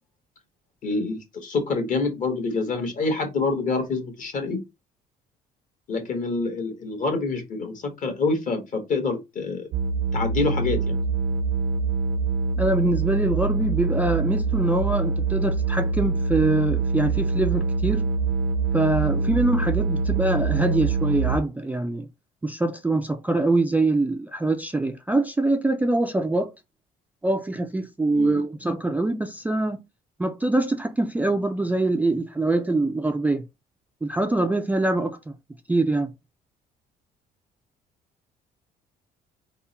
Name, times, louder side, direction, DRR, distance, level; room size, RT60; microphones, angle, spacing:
voice 1, 0.8-4.6 5.9-9.7 10.1-11.0 19.1-19.3 28.1-28.4, left 3 dB, 50° left, 1.5 m, -27 dB
sound 1, 9.7-21.4, right 4 dB, 75° right, 0.6 m, -24 dB
voice 2, 12.6-18.1 18.7-22.1 22.4-26.5 27.2-29.8 30.2-33.5 34.0-35.3 35.7-36.1, right 2 dB, 10° right, 0.3 m, -24 dB
3.5 x 2.2 x 4.2 m
cardioid pair, 110°, 17 cm